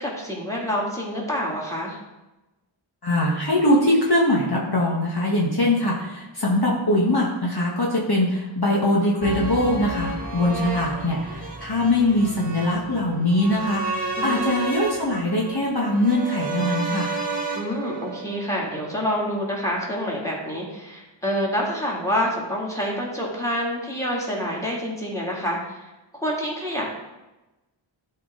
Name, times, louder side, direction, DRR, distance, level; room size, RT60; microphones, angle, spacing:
voice 1, 0.0-2.0 14.2-14.4 17.5-25.8 26.1-26.9, equal, 5° left, -4 dB, 3.0 m, -27 dB
voice 2, 3.0-17.1, left 1 dB, 50° left, -3 dB, 1.6 m, -22 dB
sound 1, 9.2-19.3 19.6-19.7, right 2 dB, 15° right, 1.9 m, -31 dB
12.0 x 4.7 x 4.0 m, 1.0 s
wide cardioid pair, 50°, 48 cm